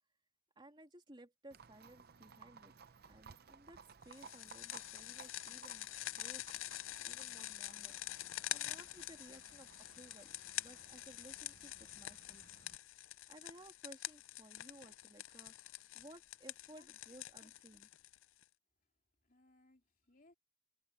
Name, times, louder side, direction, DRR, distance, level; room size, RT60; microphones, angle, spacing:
voice 1, 0.5-2.8 3.1-3.8 4.0-6.5 7.0-8.0 8.5-12.5 13.3-17.9, right 1 dB, 20° right, 3.1 m, -58 dB
Livestock farm animals working animals, 1.5-12.8, right 5 dB, 45° right, 0.7 m, -60 dB
sound 1, 4.1-18.4, left 15 dB, 65° left, 0.4 m, -46 dB
voice 2, 16.7-17.5 18.8-20.3, left 2 dB, 40° left, 3.4 m, -69 dB
head